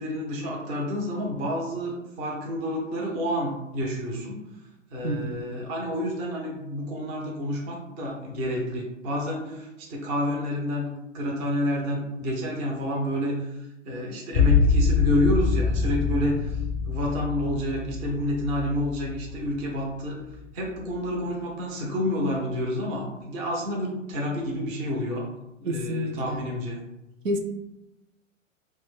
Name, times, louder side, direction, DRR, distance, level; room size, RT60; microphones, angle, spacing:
voice 1, 0.0-4.4 4.9-16.6 16.9-20.2 20.5-25.3 25.6-26.8, left 1 dB, 20° right, -1 dB, 0.5 m, -29 dB
voice 2, 5.0-5.4 25.6-26.4 27.2-27.4, equal, 80° right, 4 dB, 0.5 m, -29 dB
sound 1, 14.3-19.8 20.2-20.9, left 4 dB, 30° left, 0.5 m, -25 dB
2.3 x 2.1 x 3.6 m, 0.94 s
figure-of-eight pair, 105°, 39 cm